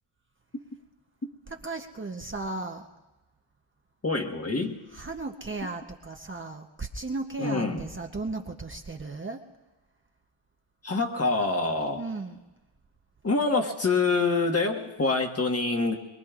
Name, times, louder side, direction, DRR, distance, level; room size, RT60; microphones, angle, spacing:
voice 1, 1.6-2.8 4.9-9.4 12.0-12.4, right 3 dB, 25° right, 3 dB, 0.8 m, -35 dB
voice 2, 4.0-4.8 5.6-5.7 7.4-7.9 10.8-12.0 13.2-15.9, left 3 dB, 30° left, 3 dB, 1.4 m, -26 dB
22.5 x 22.0 x 2.4 m, 1.1 s
cardioid pair, 70°, 49 cm